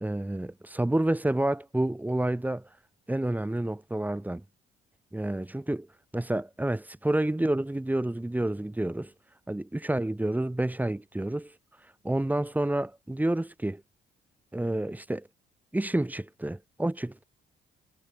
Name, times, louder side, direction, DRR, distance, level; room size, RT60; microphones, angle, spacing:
voice 1, 0.0-2.7 3.1-4.4 5.1-5.9 6.1-9.1 9.5-11.5 12.0-13.8 14.5-15.3 15.7-17.2, right 1 dB, 10° right, 1.3 m, -29 dB
cardioid pair, 90°, 20 cm